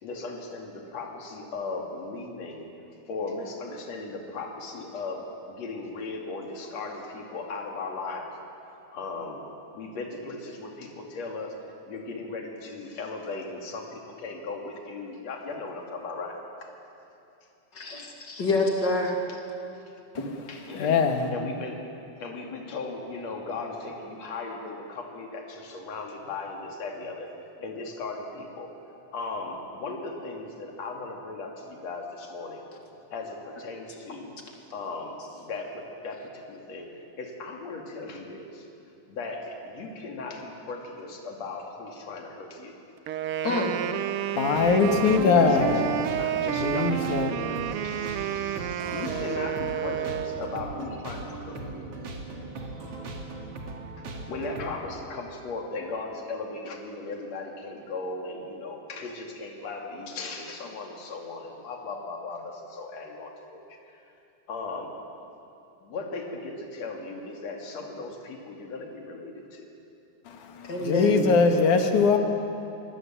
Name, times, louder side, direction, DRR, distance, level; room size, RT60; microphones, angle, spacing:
voice 1, 0.0-2.7 3.1-8.3 8.9-9.4 9.8-11.5 11.9-16.4 20.5-21.0 21.3-21.7 22.2-27.3 27.6-28.7 29.1-32.6 33.1-34.3 34.7-36.9 37.2-38.6 39.1-42.7 45.3-51.9 54.3-63.6 64.5-64.9 65.9-69.6, left 3 dB, 60° left, 1 dB, 3.7 m, -37 dB
voice 2, 17.7-19.2 43.4-43.8 70.6-71.2, left 2 dB, 35° left, 1 dB, 3.1 m, -27 dB
voice 3, 20.8-21.3 44.4-45.9 46.6-47.3 70.3-72.2, left 4 dB, 80° left, 5 dB, 3.2 m, -22 dB
Wind instrument woodwind instrument, 43.1-50.7, right 11 dB, 75° right, 1.2 m, -30 dB
sound 1, 44.4-54.7, right 2 dB, 50° right, 3.2 m, -39 dB
24.0 x 21.5 x 8.8 m, 2.8 s
omnidirectional pair, 3.5 m